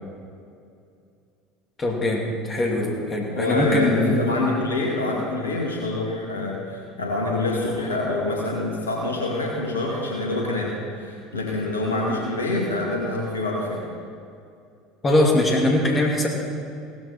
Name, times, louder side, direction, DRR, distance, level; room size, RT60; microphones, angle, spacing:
voice 1, 1.8-4.2 15.0-16.3, left 1 dB, 25° left, 0 dB, 2.4 m, -21 dB
voice 2, 3.3-13.8, left 2 dB, 75° left, -2 dB, 2.4 m, -26 dB
16.5 x 13.5 x 4.3 m, 2.4 s
figure-of-eight pair, 70°, 0 cm